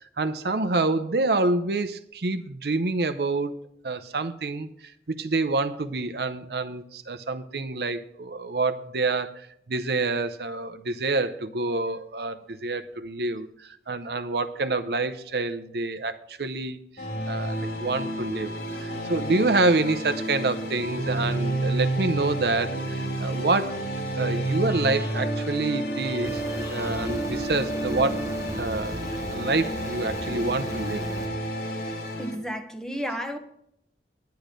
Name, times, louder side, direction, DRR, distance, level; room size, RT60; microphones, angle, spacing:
voice 1, 0.2-3.6 3.8-4.7 5.1-16.8 17.3-23.8 24.2-28.3 28.6-29.0 29.3-31.0, right 3 dB, 65° right, 11 dB, 0.7 m, -27 dB
sound 1, 17.0-32.3, right 1 dB, 65° left, 2.5 m, -30 dB
sound 2, 26.2-31.3, right 1 dB, 20° right, 1.0 m, -36 dB
voice 2, 31.9-33.4, equal, 5° left, 6 dB, 1.0 m, -33 dB
10.5 x 10.0 x 5.2 m, 0.72 s
head